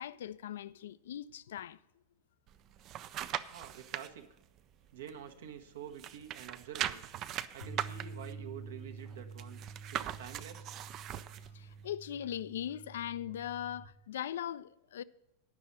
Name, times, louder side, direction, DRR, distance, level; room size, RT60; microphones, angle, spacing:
voice 1, 0.0-1.8 11.5-15.0, left 10 dB, 60° left, 0.3 m, -40 dB
sound 1, 2.5-4.1 4.6-5.7 5.9-11.5 11.9-12.0, right 11 dB, 35° right, 0.4 m, -40 dB
voice 2, 3.5-4.3 4.9-7.0 7.5-9.6 9.9-10.7, right 8 dB, 60° right, 1.0 m, -48 dB
Bass guitar, 7.6-13.9, right 4 dB, 90° left, 1.4 m, -48 dB
9.7 x 6.0 x 7.2 m
figure-of-eight pair, 90°, 0 cm